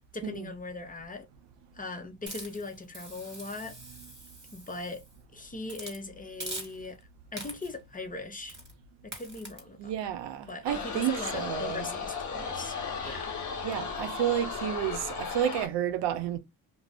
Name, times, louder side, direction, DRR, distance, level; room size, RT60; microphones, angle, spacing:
voice 1, 0.1-1.3 1.7-3.8 4.5-5.0 5.3-7.0 7.3-8.6 9.0-9.9 10.5-12.8 13.0-13.3, left 3 dB, 20° left, 0.6 m, -39 dB
Hiss, 2.3-5.1 5.7-6.0 6.4-7.0 7.4-7.8 8.5-8.7 9.1-9.6, right 2 dB, 25° right, 1.3 m, -43 dB
voice 2, 9.8-11.9 13.6-16.4, right 11 dB, 85° right, 0.6 m, -31 dB
sound 1, 10.7-15.7, left 5 dB, 45° left, 0.9 m, -35 dB
2.4 x 2.0 x 3.3 m
cardioid pair, 80°, 41 cm